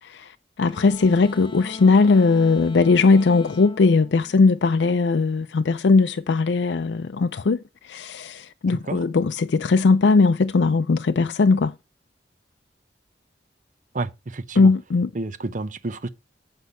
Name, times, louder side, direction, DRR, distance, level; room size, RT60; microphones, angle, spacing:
voice 1, 0.0-11.7 14.6-15.1, left 4 dB, 75° left, 0.4 m, -19 dB
sound 1, 0.7-5.1, left 2 dB, 25° left, 0.6 m, -40 dB
voice 2, 13.9-14.7 15.1-16.1, right 2 dB, 45° right, 0.7 m, -30 dB
8.3 x 5.4 x 5.5 m
head